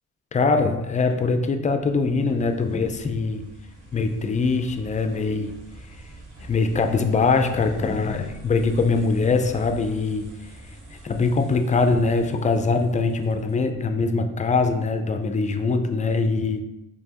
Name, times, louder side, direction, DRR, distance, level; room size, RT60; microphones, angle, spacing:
voice 1, 0.3-3.4 3.9-5.5 6.5-10.3 11.0-16.6, left 4 dB, 25° left, 6 dB, 0.4 m, -22 dB
sound 1, 1.1-13.8, right 1 dB, 50° right, 1.3 m, -44 dB
4.4 x 2.9 x 2.9 m, 0.97 s
cardioid pair, 90°, 30 cm